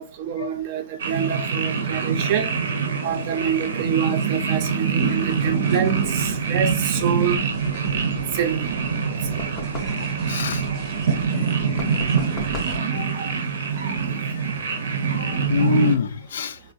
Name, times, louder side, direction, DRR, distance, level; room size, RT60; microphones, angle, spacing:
voice 1, 0.0-2.5 3.0-7.4 8.3-8.7, right 8 dB, 40° right, 0.5 m, -26 dB
sound 1, 1.0-16.0, right 6 dB, 80° right, 0.6 m, -24 dB
sound 2, 5.0-12.8, right 2 dB, 15° right, 0.8 m, -42 dB
sound 3, 9.4-10.0 11.8-12.8, left 3 dB, 20° left, 0.6 m, -36 dB
voice 2, 10.0-10.7 11.7-12.1 12.9-13.4 13.8-14.0 14.3-14.8 15.1-16.6, left 6 dB, 80° left, 0.3 m, -27 dB
3.6 x 2.1 x 2.5 m
hypercardioid pair, 155°, 0 cm